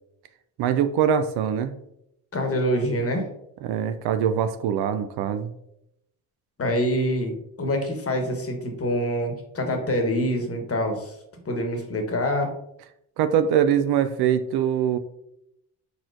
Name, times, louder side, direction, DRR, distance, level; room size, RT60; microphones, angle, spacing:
voice 1, 0.6-1.7 3.6-5.5 13.2-15.0, right 8 dB, 65° right, 10 dB, 0.5 m, -23 dB
voice 2, 2.3-3.3 6.6-11.1 11.4-12.5, equal, 35° left, 4 dB, 1.2 m, -25 dB
4.5 x 4.1 x 2.5 m, 0.78 s
hypercardioid pair, 60°, 42 cm